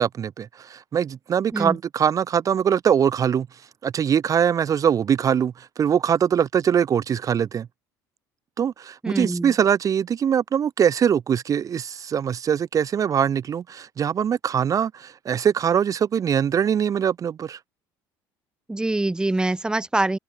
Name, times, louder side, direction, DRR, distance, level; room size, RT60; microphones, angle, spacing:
voice 1, 0.0-3.5 3.8-7.7 8.6-17.6, right 8 dB, 40° right, 0.8 m, -22 dB
voice 2, 9.0-9.5 18.7-20.2, right 2 dB, 10° right, 0.8 m, -24 dB
supercardioid pair, 95°, 9 cm